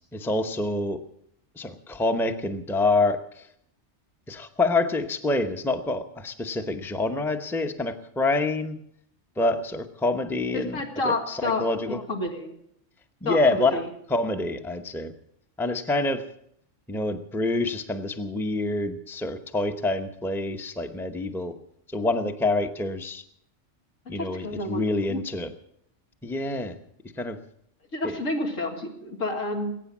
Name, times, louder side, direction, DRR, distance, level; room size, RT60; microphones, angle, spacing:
voice 1, 0.1-1.0 1.6-3.5 4.3-8.8 9.4-12.0 13.2-15.1 15.6-16.2 16.9-21.5 21.9-23.2 24.1-25.5 26.2-26.8 27.2-27.4 28.0-28.2, left 2 dB, ahead, 7 dB, 0.7 m, -27 dB
voice 2, 10.5-12.6 13.3-13.9 24.1-24.8 25.1-25.2 27.9-29.8, left 2 dB, 80° left, 1 dB, 2.4 m, -30 dB
21.0 x 9.2 x 7.3 m, 0.71 s
omnidirectional pair, 1.3 m